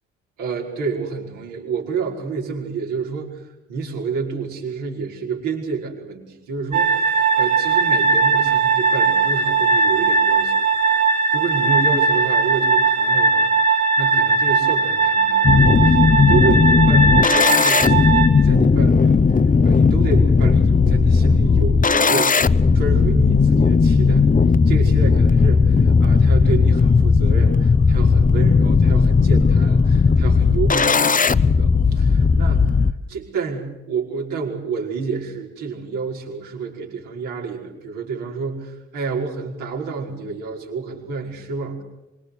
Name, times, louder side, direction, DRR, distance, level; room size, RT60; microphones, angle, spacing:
voice 1, 0.4-11.0 11.3-22.4 22.7-24.3 24.7-41.8, right 5 dB, 75° right, -1 dB, 5.4 m, -29 dB
sound 1, 6.7-18.3, right 4 dB, 60° right, 3.9 m, -18 dB
sound 2, 15.4-32.9, left 5 dB, 25° left, 0.9 m, -16 dB
25.0 x 23.5 x 6.5 m, 0.99 s
hypercardioid pair, 40°, 31 cm